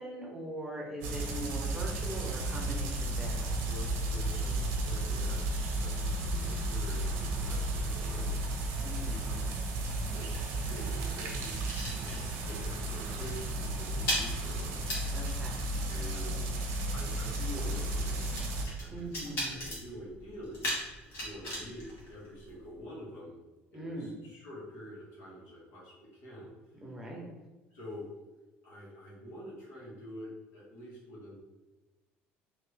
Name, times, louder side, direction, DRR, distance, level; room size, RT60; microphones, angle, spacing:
voice 1, 0.0-3.7 6.1-6.6 8.8-9.2 15.1-15.7 18.9-19.7 23.7-24.1 26.8-27.2, right 1 dB, 10° right, -2 dB, 0.7 m, -41 dB
sound 1, 1.0-18.7, right 1 dB, 90° right, 0.8 m, -33 dB
voice 2, 3.6-8.4 8.6-8.7 9.1-9.5 10.1-11.6 11.9-14.9 15.9-16.5 16.9-18.5 18.8-20.7 21.1-23.4 23.7-26.5 27.7-28.1 28.6-31.3, equal, 75° left, -5 dB, 1.4 m, -47 dB
sound 2, 10.2-12.6 12.9-13.2 13.4-22.8, equal, 60° left, 1.4 m, -40 dB
3.3 x 2.5 x 3.3 m, 1.1 s
cardioid pair, 130°, 4 cm